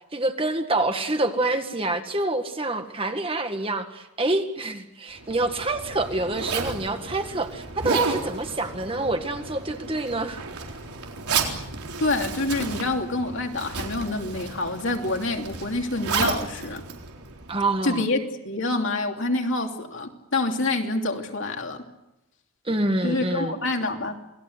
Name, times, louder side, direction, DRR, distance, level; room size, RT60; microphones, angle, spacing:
voice 1, 0.1-10.4 17.5-18.0 22.7-23.6, right 2 dB, 25° right, 6 dB, 1.7 m, -27 dB
Zipper (clothing), 5.1-17.8, right 4 dB, 85° right, 4.0 m, -32 dB
voice 2, 12.0-16.8 17.8-18.2 18.4-21.8 23.0-24.2, left 2 dB, 55° left, 3 dB, 3.0 m, -27 dB
28.0 x 20.5 x 8.1 m, 0.90 s
head